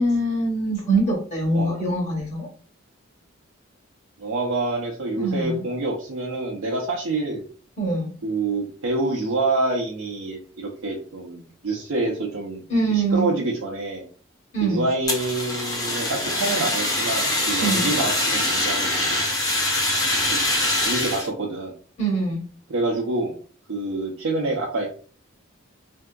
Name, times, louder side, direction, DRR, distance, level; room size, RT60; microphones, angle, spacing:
voice 1, 0.0-2.5 5.2-5.6 7.8-8.1 12.7-13.3 14.5-14.8 17.6-17.9 22.0-22.4, right 2 dB, 35° left, -2 dB, 1.0 m, -23 dB
voice 2, 4.2-7.4 8.2-12.6 12.9-14.0 14.6-19.2 20.3-20.4 20.9-21.7 22.7-23.3 23.7-24.9, right 2 dB, 85° right, -1 dB, 0.6 m, -27 dB
Fire, 15.1-21.3, left 1 dB, 15° left, 0.7 m, -24 dB
3.5 x 2.7 x 2.2 m, 0.42 s
head